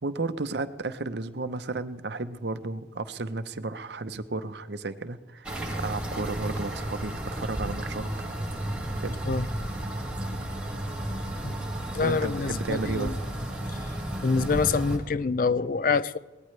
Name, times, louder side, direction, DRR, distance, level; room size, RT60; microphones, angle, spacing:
voice 1, 0.0-8.3 9.0-9.2 12.0-13.1, right 3 dB, 65° right, 0.8 m, -33 dB
sound 1, 5.4-15.0, right 1 dB, 5° right, 2.2 m, -33 dB
voice 2, 11.9-13.2 14.2-16.2, left 4 dB, 50° left, 0.5 m, -26 dB
22.5 x 18.5 x 3.3 m
head